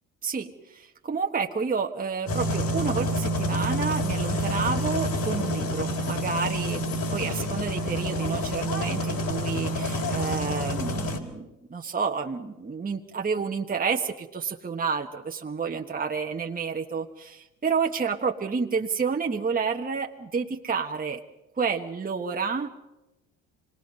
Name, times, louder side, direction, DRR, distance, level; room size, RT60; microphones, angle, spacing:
voice 1, 0.2-6.8 7.1-21.2 21.6-22.7, right 5 dB, 20° right, 3 dB, 1.3 m, -30 dB
sound 1, 2.3-11.2, equal, 55° left, 3.6 m, -28 dB
27.0 x 19.0 x 5.5 m, 0.99 s
hypercardioid pair, 55°, 40 cm